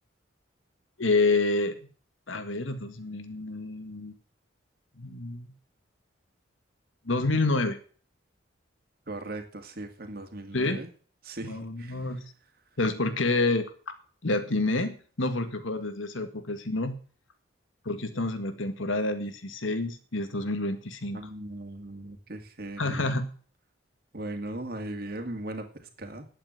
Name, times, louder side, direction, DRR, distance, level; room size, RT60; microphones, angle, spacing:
voice 1, 1.0-1.8 2.3-4.1 5.0-5.5 7.1-7.8 10.5-10.8 11.4-12.2 12.8-13.7 14.2-17.0 17.9-21.2 22.8-23.3, left 2 dB, 80° left, 9 dB, 1.8 m, -28 dB
voice 2, 9.1-10.9 11.2-12.0 21.1-23.1 24.1-26.3, right 1 dB, 50° right, 5 dB, 2.2 m, -38 dB
10.5 x 8.8 x 7.8 m, 0.41 s
head